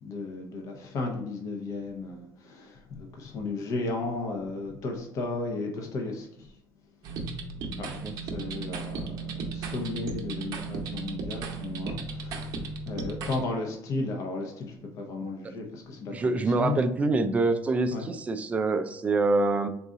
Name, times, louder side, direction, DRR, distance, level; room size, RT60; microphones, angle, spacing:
voice 1, 0.0-6.5 7.8-16.8 17.9-18.0, left 3 dB, 45° left, 0.7 m, -34 dB
sound 1, 7.0-13.4, right 4 dB, 55° right, 0.7 m, -35 dB
voice 2, 16.1-19.7, right 3 dB, 20° right, 0.3 m, -25 dB
3.7 x 2.3 x 3.9 m
cardioid pair, 150°, 8 cm